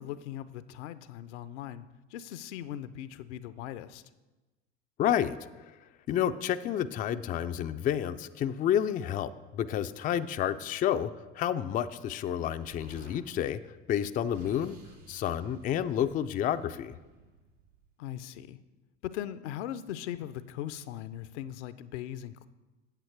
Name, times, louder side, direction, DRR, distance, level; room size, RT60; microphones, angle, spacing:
voice 1, 0.0-4.0 18.0-18.6 19.0-22.5, left 11 dB, 70° left, 14 dB, 0.6 m, -39 dB
voice 2, 5.0-5.4 6.1-13.6 13.9-14.8 15.1-17.0, left 10 dB, 25° left, 10 dB, 0.3 m, -30 dB
Explosion, 12.6-13.2 14.0-17.9, right 4 dB, 90° right, 2.1 m, -53 dB
8.8 x 7.6 x 4.6 m, 1.2 s
hypercardioid pair, 80°, 36 cm